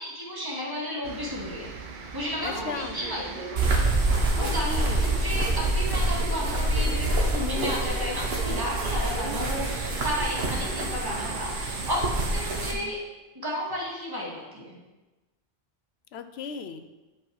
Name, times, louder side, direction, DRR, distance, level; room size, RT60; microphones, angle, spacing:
voice 1, 0.0-1.7 2.1-3.5 4.4-4.8 5.1-13.0 13.3-14.8, equal, 20° right, -4 dB, 1.9 m, -33 dB
sound 1, 1.0-12.8, right 4 dB, 55° right, 0.8 m, -38 dB
voice 2, 2.4-3.0 4.4-5.1 12.7-12.9 16.1-16.9, left 6 dB, 80° left, 9 dB, 0.9 m, -37 dB
sound 2, 3.6-12.7, right 2 dB, 75° right, 1.4 m, -26 dB
7.5 x 5.5 x 4.7 m, 1.1 s
omnidirectional pair, 1.1 m